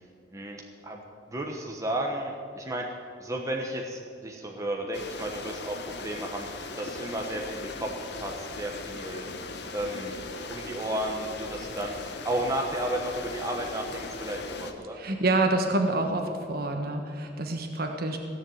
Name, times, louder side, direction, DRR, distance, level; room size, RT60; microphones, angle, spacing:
voice 1, 0.3-1.0 1.3-6.5 6.8-7.9 8.2-9.2 9.7-11.9 12.2-15.0, right 1 dB, 15° right, 0 dB, 1.2 m, -33 dB
sound 1, 4.9-14.7, left 3 dB, 65° left, 1.3 m, -39 dB
voice 2, 14.9-18.2, right 2 dB, 55° right, 3 dB, 1.3 m, -27 dB
16.5 x 7.5 x 9.2 m, 2.5 s
head